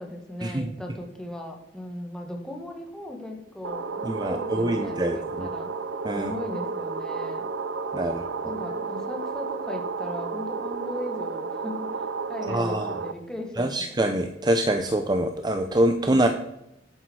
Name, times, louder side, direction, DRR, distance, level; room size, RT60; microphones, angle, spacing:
voice 1, 0.0-5.7 6.1-7.5 8.4-12.0 12.3-13.8, left 1 dB, 5° left, 1 dB, 1.9 m, -37 dB
sound 1, 3.6-13.1, right 4 dB, 85° right, 0.8 m, -32 dB
voice 2, 4.0-5.5 6.0-6.3 7.9-8.6 12.5-12.9 13.6-16.3, right 1 dB, 25° right, 6 dB, 0.6 m, -25 dB
10.5 x 8.9 x 4.7 m, 0.85 s
head